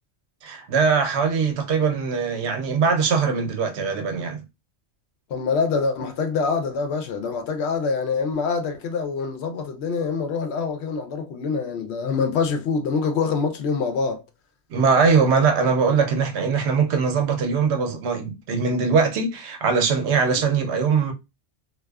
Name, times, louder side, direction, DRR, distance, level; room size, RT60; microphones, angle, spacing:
voice 1, 0.4-4.4 14.7-21.1, right 5 dB, 75° right, 0.8 m, -21 dB
voice 2, 5.3-14.2 20.3-20.5, left 5 dB, 75° left, 0.8 m, -25 dB
2.3 x 2.3 x 2.2 m
omnidirectional pair, 1.1 m